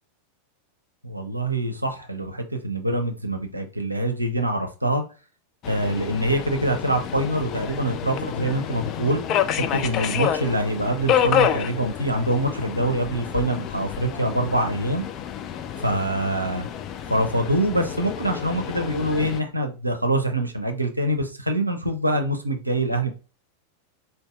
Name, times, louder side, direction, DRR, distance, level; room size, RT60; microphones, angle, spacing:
voice 1, 1.0-5.0 5.7-9.2 9.5-15.0 15.8-16.7 17.1-23.1, right 1 dB, 85° right, 0.6 m, -25 dB
Subway metro underground, 5.6-19.4, left 9 dB, 35° left, 0.3 m, -29 dB
4.3 x 2.6 x 2.3 m
figure-of-eight pair, 90°, 0 cm